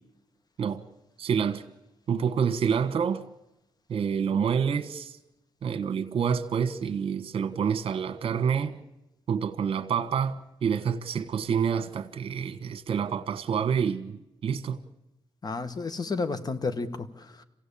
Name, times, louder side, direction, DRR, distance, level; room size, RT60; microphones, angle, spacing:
voice 1, 1.2-1.6 2.1-3.2 3.9-5.2 5.6-8.8 9.3-14.8, right 7 dB, 65° right, 1.4 m, -28 dB
voice 2, 15.4-17.4, left 4 dB, 40° left, 1.6 m, -32 dB
27.0 x 16.5 x 8.6 m
cardioid pair, 80°, 10 cm